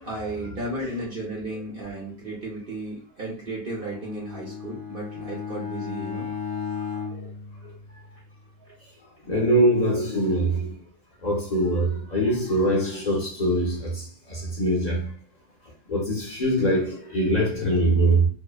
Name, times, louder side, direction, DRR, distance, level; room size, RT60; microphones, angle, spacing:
voice 1, 0.0-6.3, right 2 dB, 55° right, 0.6 m, -34 dB
Bowed string instrument, 3.7-8.3, left 6 dB, 85° right, 1.2 m, -35 dB
voice 2, 9.3-10.7 11.2-14.0 14.3-15.1 15.9-18.3, right 1 dB, 50° left, 0.5 m, -23 dB
2.7 x 2.1 x 2.3 m
omnidirectional pair, 1.6 m